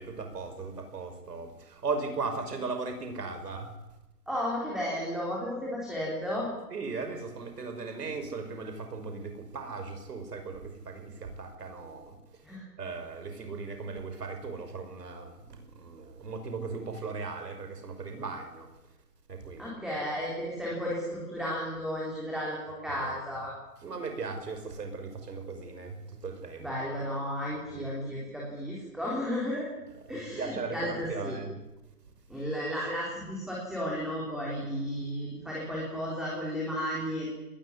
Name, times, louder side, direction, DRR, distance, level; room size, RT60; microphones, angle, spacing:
voice 1, 0.0-3.7 6.7-12.2 12.8-18.7 19.3-19.7 22.9-23.2 23.8-26.7 27.7-27.9 30.1-31.6, right 4 dB, 85° right, 6 dB, 5.7 m, -37 dB
voice 2, 4.3-6.5 12.4-12.6 19.6-23.5 26.6-29.7 30.1-31.4 32.3-37.3, equal, ahead, -5 dB, 3.6 m, -33 dB
21.0 x 20.5 x 9.8 m, 1.0 s
hypercardioid pair, 165°, 47 cm